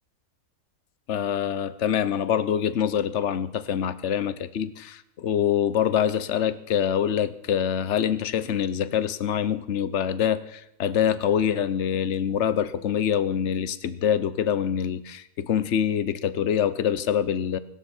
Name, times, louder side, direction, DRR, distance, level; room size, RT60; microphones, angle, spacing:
voice 1, 1.1-17.6, left 9 dB, 55° left, 14 dB, 1.2 m, -25 dB
23.0 x 13.0 x 4.5 m, 0.81 s
omnidirectional pair, 1.6 m